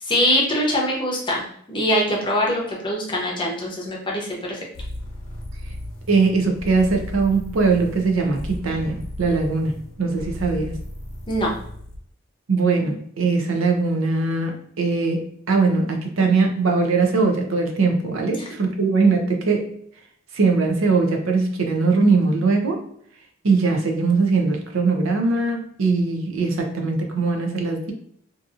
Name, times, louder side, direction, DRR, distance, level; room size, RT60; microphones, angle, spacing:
voice 1, 0.0-4.6 11.3-11.5 18.4-18.5, equal, 25° left, -2 dB, 0.6 m, -23 dB
sound 1, 4.7-12.0, left 1 dB, 75° left, 0.8 m, -35 dB
voice 2, 6.1-10.7 12.5-19.7 20.3-22.8 23.4-27.9, right 4 dB, 75° right, 3 dB, 0.5 m, -21 dB
2.8 x 2.5 x 2.4 m, 0.66 s
head